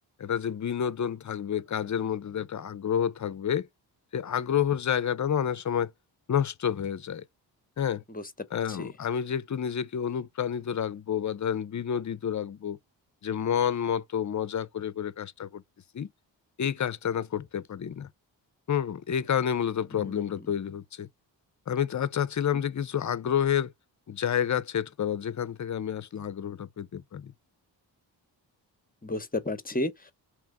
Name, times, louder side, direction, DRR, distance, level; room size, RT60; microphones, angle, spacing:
voice 1, 0.2-3.7 4.1-5.9 6.3-7.2 7.8-8.0 8.5-12.8 13.2-15.6 15.9-16.1 16.6-18.1 18.7-21.1 21.7-23.7 24.1-27.3, left 8 dB, 40° left, 0.7 m, -29 dB
voice 2, 19.9-20.5 29.0-30.1, left 2 dB, 20° left, 0.9 m, -33 dB
3.3 x 3.0 x 3.5 m
cardioid pair, 55°, 45 cm